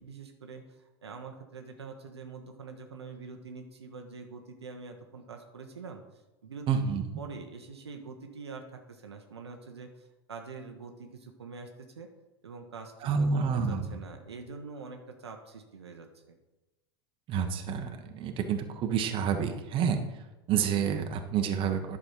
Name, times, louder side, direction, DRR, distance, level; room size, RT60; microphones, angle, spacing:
voice 1, 0.0-6.0 6.4-6.8 7.2-12.1 12.4-16.4, right 4 dB, 80° right, 4 dB, 1.1 m, -45 dB
voice 2, 6.7-7.0 13.0-13.9 17.3-20.0 20.5-22.0, right 6 dB, 40° right, 5 dB, 1.4 m, -28 dB
10.5 x 6.3 x 5.8 m, 1.1 s
figure-of-eight pair, 85°, 14 cm